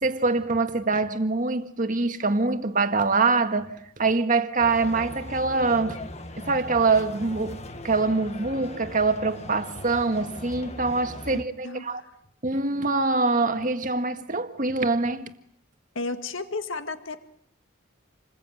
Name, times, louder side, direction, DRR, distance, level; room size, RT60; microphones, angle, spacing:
voice 1, 0.0-6.0 6.4-12.0 12.4-15.3, right 3 dB, 40° right, 1.8 m, -24 dB
sound 1, 4.6-11.4, left 1 dB, 30° left, 1.5 m, -39 dB
voice 2, 11.3-12.1 16.0-17.2, left 3 dB, 60° left, 2.0 m, -34 dB
28.5 x 21.5 x 9.2 m
head